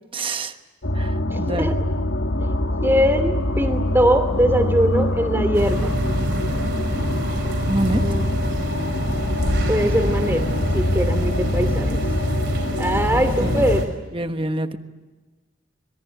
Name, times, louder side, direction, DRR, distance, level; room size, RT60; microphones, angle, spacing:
voice 1, 0.1-0.5 0.9-1.7 7.7-8.0 13.4-13.6 14.1-14.8, right 2 dB, 25° right, 8 dB, 1.2 m, -26 dB
sound 1, 0.8-13.8, left 1 dB, 90° left, 1.8 m, -24 dB
voice 2, 1.3-1.7 2.4-2.5 2.8-6.0 8.0-8.3 9.7-10.5 10.7-12.0 12.8-13.9, equal, 10° right, 8 dB, 2.7 m, -21 dB
sound 2, 5.5-13.9, right 1 dB, 60° right, 5.2 m, -27 dB
26.0 x 22.5 x 9.2 m, 1.2 s
head